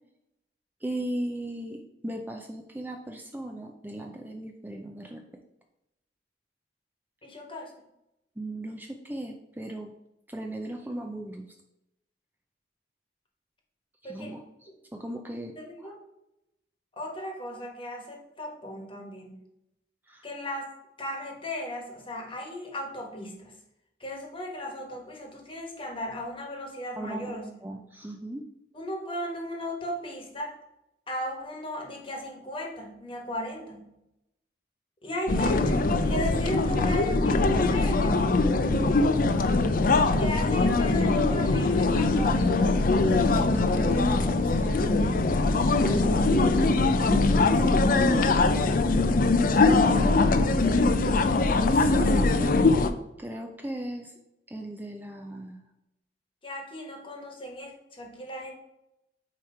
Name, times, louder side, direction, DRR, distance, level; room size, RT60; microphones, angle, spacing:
voice 1, 0.8-5.2 8.4-9.9 10.3-11.5 14.0-15.9 20.1-20.3 27.0-28.5 43.1-48.1 49.9-50.9 51.7-52.6 53.2-54.1 54.5-55.6, right 1 dB, 10° right, 2 dB, 0.5 m, -37 dB
voice 2, 7.2-7.7 14.0-14.3 15.6-16.0 17.0-19.4 20.2-20.7 21.0-23.5 24.0-27.5 28.7-30.6 31.1-33.9 35.0-38.2 40.0-42.7 49.7-51.2 56.4-58.5, equal, 30° left, 1 dB, 1.4 m, -36 dB
sound 1, 35.3-52.9, left 3 dB, 50° left, 0.5 m, -22 dB
8.6 x 3.1 x 4.9 m, 0.87 s
head